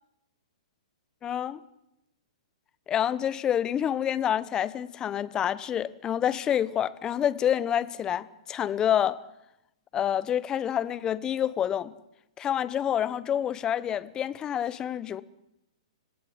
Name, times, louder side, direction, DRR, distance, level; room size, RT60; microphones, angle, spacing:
voice 1, 1.2-1.6 2.9-9.2 9.9-11.9 12.4-15.2, left 9 dB, 20° left, 1.1 m, -27 dB
26.5 x 18.0 x 9.4 m
hypercardioid pair, 125°, 3 cm